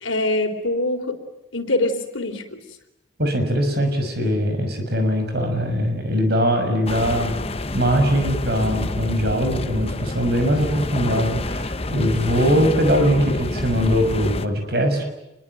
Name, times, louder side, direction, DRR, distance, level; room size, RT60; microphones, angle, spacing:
voice 1, 0.0-1.1 1.5-2.4, left 2 dB, 85° left, 6 dB, 3.9 m, -23 dB
voice 2, 3.2-7.4 7.7-15.0, equal, 55° right, 6 dB, 6.4 m, -21 dB
sound 1, 6.9-14.5, left 1 dB, 30° left, 1.1 m, -28 dB
28.5 x 22.5 x 9.2 m, 0.94 s
head